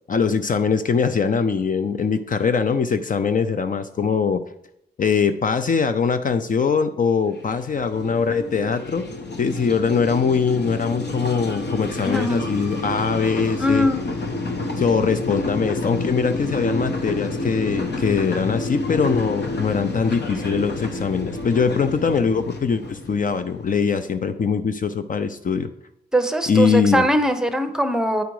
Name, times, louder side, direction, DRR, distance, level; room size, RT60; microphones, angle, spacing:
voice 1, 0.1-4.4 5.0-9.1 9.4-13.9 14.8-25.7 26.5-27.1, left 5 dB, 50° left, 10 dB, 0.5 m, -22 dB
sound 1, 7.3-24.0, left 2 dB, 75° left, 1.1 m, -29 dB
voice 2, 12.0-12.5 13.6-14.0 26.1-28.2, equal, 5° right, 7 dB, 0.8 m, -21 dB
9.2 x 5.0 x 4.7 m, 0.76 s
cardioid pair, 85°, 18 cm